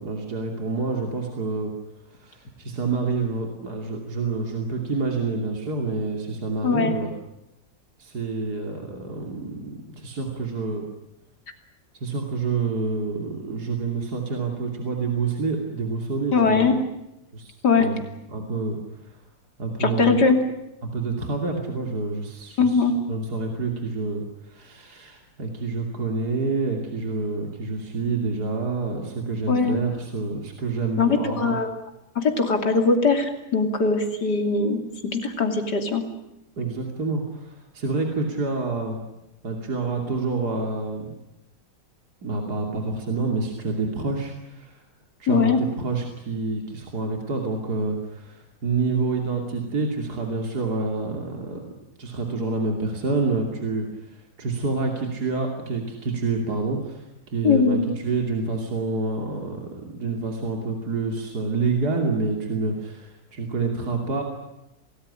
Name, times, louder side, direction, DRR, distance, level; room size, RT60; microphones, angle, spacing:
voice 1, 0.0-1.7 2.1-7.1 8.0-10.8 11.9-16.8 17.3-18.0 18.3-19.1 19.6-20.2 20.8-31.6 36.6-39.0 39.4-41.1 42.2-44.8 45.2-51.6 52.0-64.2, right 3 dB, 70° right, 2 dB, 3.4 m, -28 dB
voice 2, 6.6-6.9 16.3-16.8 17.6-17.9 19.8-20.4 22.6-22.9 29.5-29.8 31.0-31.7 32.2-36.0 45.3-45.6 57.4-57.9, left 4 dB, 75° left, 5 dB, 3.5 m, -21 dB
27.5 x 19.0 x 10.0 m, 0.91 s
omnidirectional pair, 1.8 m